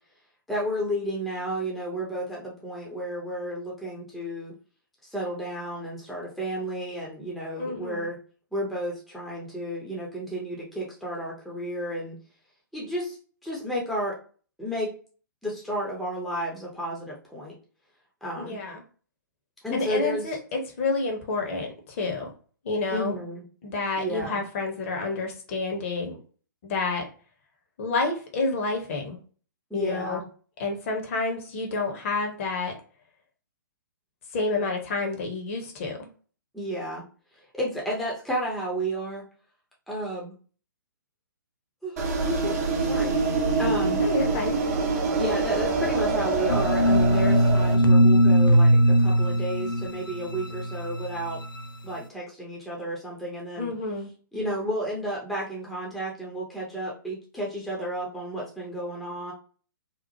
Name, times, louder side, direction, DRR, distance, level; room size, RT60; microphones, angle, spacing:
voice 1, 0.5-4.5 5.0-8.2 8.5-12.2 12.7-13.2 13.4-14.2 14.6-14.9 15.4-17.5 18.2-18.6 19.6-20.4 22.9-23.4 24.0-24.4 29.7-30.3 36.5-37.0 37.3-39.2 39.9-40.3 41.8-43.1 43.6-44.0 45.2-51.4 51.8-53.7 54.3-59.3, equal, ahead, -4 dB, 0.5 m, -32 dB
voice 2, 7.6-8.1 18.4-18.8 19.7-22.3 22.6-23.2 23.6-26.2 26.6-27.1 27.8-29.2 29.7-30.2 30.6-32.7 34.3-36.0 43.9-44.6 53.6-54.1, left 3 dB, 40° left, 2 dB, 0.7 m, -29 dB
sound 1, 42.0-47.7, right 3 dB, 45° right, 0.6 m, -25 dB
sound 2, 46.5-51.6, equal, 90° left, 0.4 m, -20 dB
2.8 x 2.0 x 2.7 m, 0.40 s
figure-of-eight pair, 125°, 11 cm